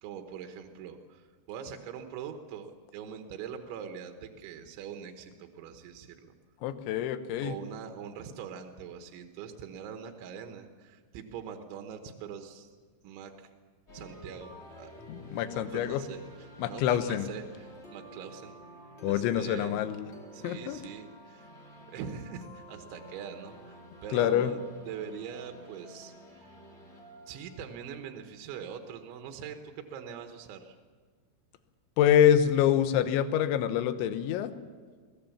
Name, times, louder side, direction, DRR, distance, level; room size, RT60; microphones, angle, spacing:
voice 1, 0.0-6.3 7.4-12.7 13.0-13.5 13.9-14.9 15.5-16.2 16.6-18.5 19.1-19.8 20.3-21.5 21.9-26.6 27.3-30.8, right 7 dB, 80° right, 5 dB, 3.6 m, -43 dB
voice 2, 6.6-7.5 15.1-16.0 16.6-17.3 19.0-20.1 20.4-20.8 24.1-24.5 32.0-34.5, left 10 dB, 80° left, 11 dB, 3.4 m, -26 dB
sound 1, 13.9-28.7, equal, 25° left, 1.6 m, -51 dB
23.0 x 17.5 x 7.2 m, 1.5 s
omnidirectional pair, 5.4 m